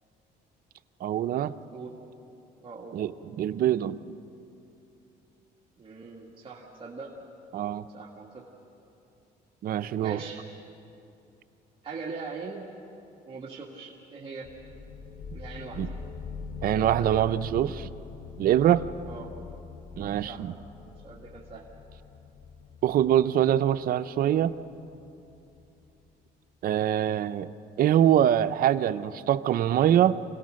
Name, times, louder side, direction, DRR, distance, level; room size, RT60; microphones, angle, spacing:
voice 1, 1.0-1.5 2.9-4.1 7.5-7.9 9.6-10.2 15.8-15.9 16.6-17.9 18.4-18.9 20.0-20.5 22.8-24.5 26.6-27.5 27.8-30.2, right 11 dB, 60° right, 12 dB, 0.7 m, -24 dB
voice 2, 2.6-3.0 5.8-7.1 7.9-8.4 10.0-10.4 11.8-12.7 13.3-14.5 15.3-15.8 16.7-17.3 19.1-19.3 20.3-20.4 21.0-21.7, right 4 dB, 30° right, -4 dB, 2.1 m, -41 dB
sound 1, 14.4-25.8, left 5 dB, 60° left, 1.0 m, -43 dB
27.0 x 18.0 x 6.4 m, 2.8 s
cardioid pair, 110°, 17 cm